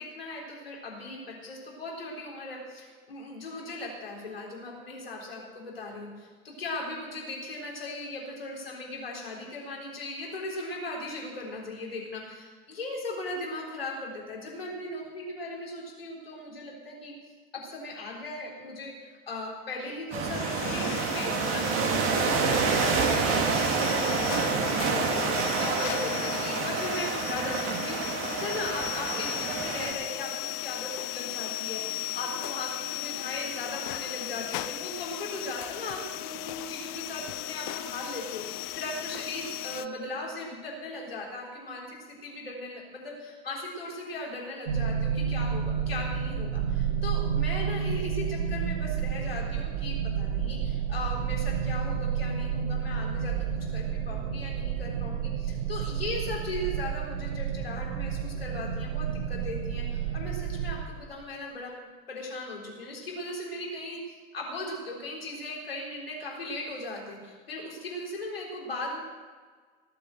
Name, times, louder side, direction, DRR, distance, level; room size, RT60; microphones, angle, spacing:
voice 1, 0.0-17.1 17.5-28.0 28.3-53.5 53.7-61.7 62.1-69.0, left 2 dB, 85° left, -2 dB, 3.9 m, -38 dB
sound 1, 20.1-29.9, right 5 dB, 45° right, 2.5 m, -28 dB
sound 2, 20.2-39.9, left 16 dB, 55° left, 0.7 m, -36 dB
sound 3, 44.7-60.8, right 7 dB, 75° right, 1.2 m, -30 dB
18.5 x 7.8 x 7.8 m, 1.5 s
figure-of-eight pair, 70°, 29 cm